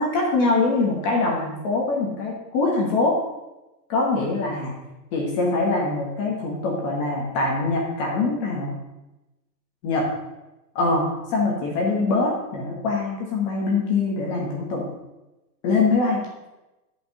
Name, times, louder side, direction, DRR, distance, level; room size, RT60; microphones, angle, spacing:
voice 1, 0.0-3.2 3.9-4.7 5.1-8.7 9.8-10.0 10.7-14.8 15.6-16.2, left 3 dB, 20° left, -2 dB, 1.3 m, -23 dB
10.5 x 5.3 x 6.4 m, 1.0 s
hypercardioid pair, 175°, 50 cm